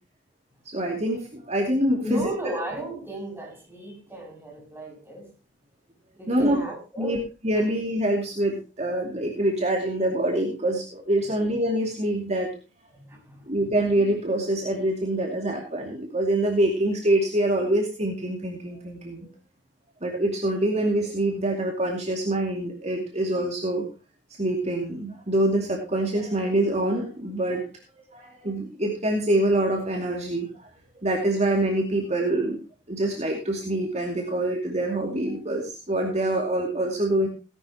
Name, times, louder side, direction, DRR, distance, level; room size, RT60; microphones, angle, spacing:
voice 1, 0.7-2.3 6.3-6.6 7.0-7.2 7.4-12.5 13.5-19.3 20.0-23.9 24.4-27.6 28.1-30.7 31.0-32.6 32.9-37.3, right 1 dB, 40° right, 2.5 m, -25 dB
voice 2, 2.0-5.3 6.1-7.2 12.9-13.5, equal, 15° right, 6.9 m, -35 dB
17.5 x 11.5 x 2.9 m
head